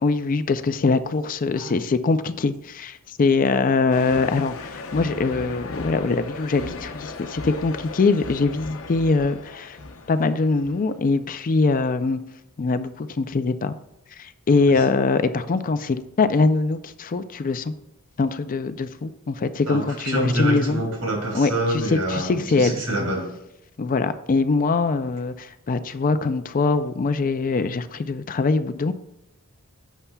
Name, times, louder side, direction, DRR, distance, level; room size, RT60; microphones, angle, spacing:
voice 1, 0.0-9.8 10.1-12.2 12.6-13.7 14.2-17.7 18.2-20.8 21.3-22.8 23.8-28.9, left 3 dB, 40° left, 11 dB, 0.4 m, -23 dB
sound 1, 3.9-11.0, left 3 dB, 65° left, 0.8 m, -36 dB
voice 2, 19.7-23.3, right 1 dB, 80° right, 0 dB, 2.9 m, -26 dB
11.0 x 8.2 x 2.3 m, 0.88 s
head